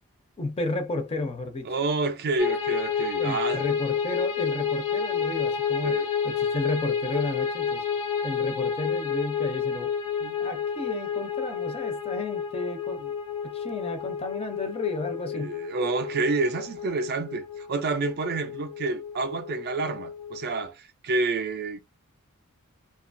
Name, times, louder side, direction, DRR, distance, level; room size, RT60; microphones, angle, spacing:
voice 1, 0.4-1.7 3.2-6.0 6.2-7.8 8.2-10.0 10.4-13.0 13.4-15.5, left 2 dB, 25° left, 0.5 m, -32 dB
voice 2, 1.7-3.6 5.8-6.1 10.2-10.4 15.3-21.8, right 3 dB, 45° right, 0.4 m, -29 dB
sound 1, 2.4-20.7, left 7 dB, 85° left, 0.7 m, -30 dB
2.7 x 2.3 x 2.5 m
head